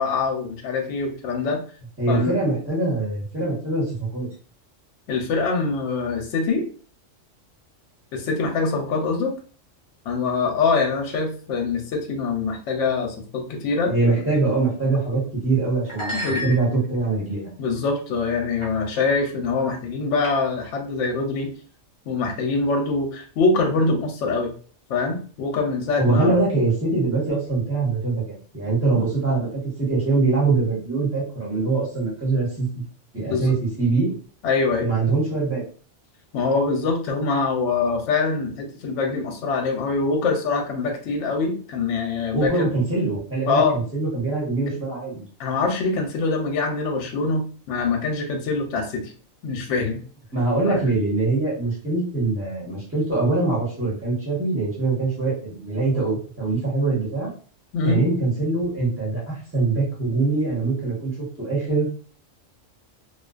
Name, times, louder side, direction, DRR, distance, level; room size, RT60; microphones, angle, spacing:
voice 1, 0.0-1.6 2.1-2.3 5.1-6.6 8.1-9.4 10.1-13.9 16.1-16.4 17.6-21.5 22.1-24.5 24.9-26.4 33.3-33.5 34.4-34.9 36.3-42.7 43.5-43.8 45.4-49.1 49.4-50.0 50.6-50.8 57.7-58.0, left 4 dB, 70° left, 3 dB, 0.9 m, -24 dB
voice 2, 2.0-4.3 13.9-17.5 26.0-29.5 29.8-32.7 33.1-34.1 34.8-35.6 42.3-45.2 50.3-57.3 57.8-61.1 61.4-61.9, right 3 dB, 10° right, -6 dB, 1.0 m, -23 dB
sound 1, 14.9-15.2 15.8-17.1 17.7-18.0 18.6-18.8 19.1-19.3 20.2-20.7, equal, 30° left, 0.6 m, -33 dB
2.5 x 2.2 x 2.4 m, 0.41 s
omnidirectional pair, 1.3 m